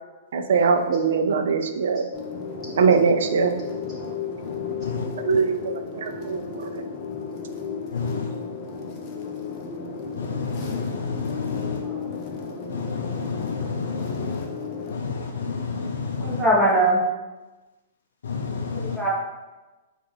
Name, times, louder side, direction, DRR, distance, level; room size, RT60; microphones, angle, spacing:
voice 1, 0.3-2.1 2.8-3.6 5.2-6.8, right 5 dB, 60° right, 0.4 m, -22 dB
sound 1, 2.1-14.9, left 5 dB, 25° left, 0.5 m, -34 dB
voice 2, 7.9-8.3 10.2-11.8 12.7-14.5 14.9-16.4 18.2-19.0, left 5 dB, 85° left, 0.4 m, -30 dB
voice 3, 11.5-12.0 16.2-17.0 18.7-19.1, right 1 dB, 5° right, 1.0 m, -22 dB
5.8 x 2.4 x 3.2 m
hypercardioid pair, 175°, 0 cm